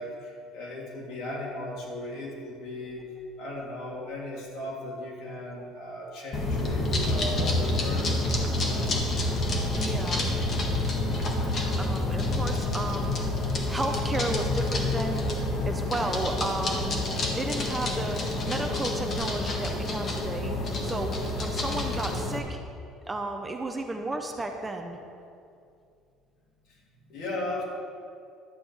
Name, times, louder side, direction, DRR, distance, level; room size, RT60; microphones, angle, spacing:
voice 1, 0.0-3.0 3.4-8.9 20.7-21.0 26.7-26.8 27.1-27.6, left 1 dB, 65° left, -3 dB, 3.0 m, -37 dB
sound 1, 6.3-22.4, left 2 dB, 35° left, 1.5 m, -28 dB
voice 2, 9.7-10.3 11.8-13.2 13.7-15.3 15.7-17.1 17.3-22.6 23.1-25.0, right 2 dB, 10° right, 3 dB, 0.7 m, -33 dB
11.5 x 5.1 x 8.5 m, 2.5 s
cardioid pair, 150°, 0 cm